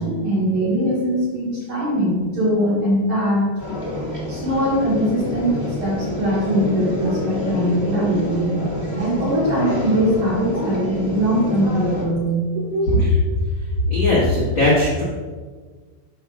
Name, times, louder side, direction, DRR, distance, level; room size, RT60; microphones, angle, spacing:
voice 1, 0.0-3.5 4.3-8.5 9.0-13.0, equal, 55° right, -7 dB, 2.2 m, -21 dB
sound 1, 3.6-12.0, left 1 dB, 15° left, 0.7 m, -27 dB
voice 2, 12.9-13.4 13.9-15.0, left 2 dB, 55° left, -8 dB, 1.3 m, -18 dB
14.0 x 5.6 x 2.4 m, 1.5 s
omnidirectional pair, 5.1 m